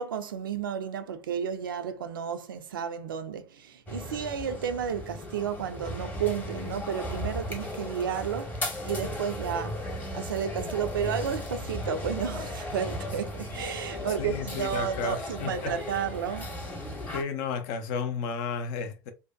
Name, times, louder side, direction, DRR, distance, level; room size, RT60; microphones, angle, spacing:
voice 1, 0.0-16.5, right 8 dB, 90° right, 0.4 m, -32 dB
sound 1, 3.9-17.2, left 1 dB, 15° left, 0.8 m, -36 dB
voice 2, 14.2-16.0 17.1-19.1, left 5 dB, 65° left, 0.5 m, -33 dB
2.6 x 2.1 x 2.3 m
hypercardioid pair, 80°, 11 cm